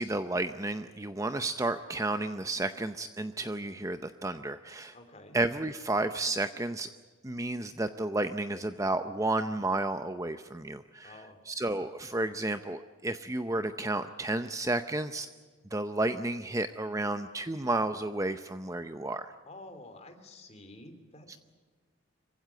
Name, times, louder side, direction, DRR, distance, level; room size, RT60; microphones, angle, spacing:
voice 1, 0.0-5.0 5.3-6.9 7.2-11.1 11.5-15.3 15.7-19.3 21.3-21.4, right 2 dB, 15° right, 10 dB, 0.6 m, -32 dB
voice 2, 4.9-5.4 11.0-11.4 19.4-21.4, left 2 dB, 30° left, 7 dB, 2.8 m, -49 dB
25.5 x 16.0 x 9.2 m, 1.4 s
head